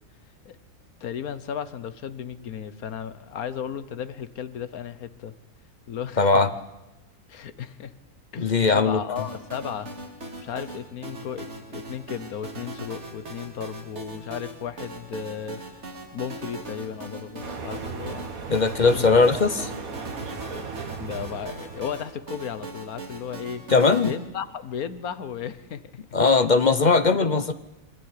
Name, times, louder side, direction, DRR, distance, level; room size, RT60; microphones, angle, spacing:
voice 1, 1.0-5.3 5.9-6.3 7.3-7.9 8.3-9.9 10.4-15.8 16.1-18.3 18.8-19.1 20.5-23.6 24.0-25.8 26.6-27.5, left 8 dB, 70° left, 14 dB, 1.5 m, -35 dB
voice 2, 6.2-6.5 8.4-9.0 18.5-19.7 23.7-24.1 26.1-27.5, left 4 dB, 40° left, 12 dB, 0.7 m, -19 dB
sound 1, 9.2-24.2, right 2 dB, 45° right, 2.7 m, -40 dB
sound 2, 17.4-22.3, right 5 dB, 65° right, 2.1 m, -36 dB
25.0 x 14.0 x 9.8 m, 1.0 s
omnidirectional pair, 1.6 m